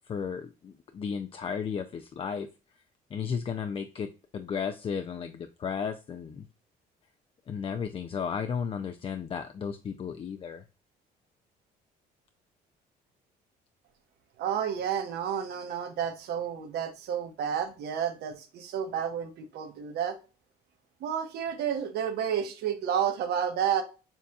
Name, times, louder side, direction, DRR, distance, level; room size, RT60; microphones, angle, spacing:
voice 1, 0.1-2.5 3.1-6.4 7.5-10.6, left 6 dB, 35° left, 7 dB, 0.4 m, -34 dB
voice 2, 14.4-20.2 21.0-23.8, right 8 dB, 75° right, 5 dB, 1.1 m, -31 dB
7.0 x 2.8 x 2.3 m, 0.31 s
cardioid pair, 110°, 17 cm